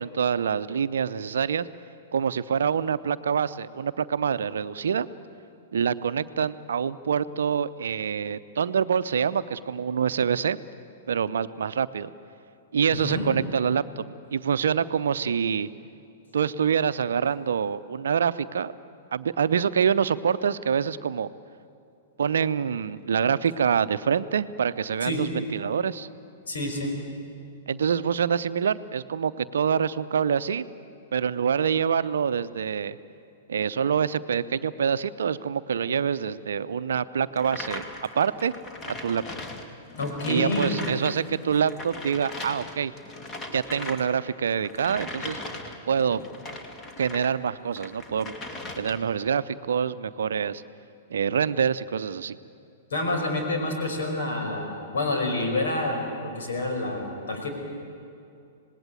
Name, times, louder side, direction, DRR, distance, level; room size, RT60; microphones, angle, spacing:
voice 1, 0.0-1.7 2.1-5.1 5.7-10.6 11.1-12.1 12.7-14.0 14.3-15.7 16.3-18.7 19.1-21.3 22.2-26.1 27.7-30.6 31.1-33.0 33.5-37.8 38.2-38.5 39.0-39.2 40.3-42.9 43.5-45.4 45.9-46.2 47.0-48.3 48.8-50.6 51.1-52.4, right 7 dB, 65° right, 13 dB, 0.7 m, -26 dB
voice 2, 12.9-13.3 25.0-25.2 26.4-26.9 40.0-40.8 52.9-57.5, left 2 dB, 65° left, 3 dB, 5.3 m, -28 dB
sound 1, 37.3-41.2 41.4-47.3 47.7-49.2, left 2 dB, 20° left, 2.4 m, -39 dB
26.5 x 19.0 x 9.2 m, 2.6 s
figure-of-eight pair, 105°, 0 cm